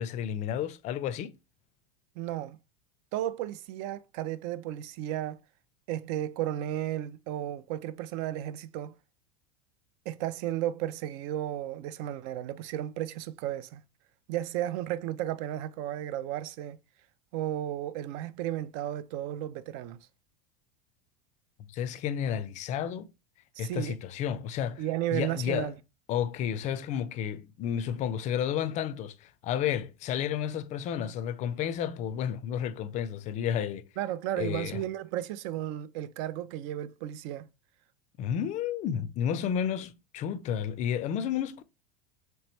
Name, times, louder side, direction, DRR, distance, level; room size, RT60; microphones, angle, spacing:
voice 1, 0.0-1.3 21.7-23.1 23.6-24.8 25.1-25.7 26.1-33.9 34.4-34.8 38.2-41.6, left 9 dB, 35° left, 0.4 m, -31 dB
voice 2, 2.2-2.6 3.1-5.4 5.9-8.9 10.1-13.8 14.3-16.8 17.3-20.0 23.6-23.9 24.8-25.7 34.0-37.5, right 12 dB, 55° right, 0.4 m, -34 dB
3.3 x 3.0 x 3.0 m
supercardioid pair, 110°, 20 cm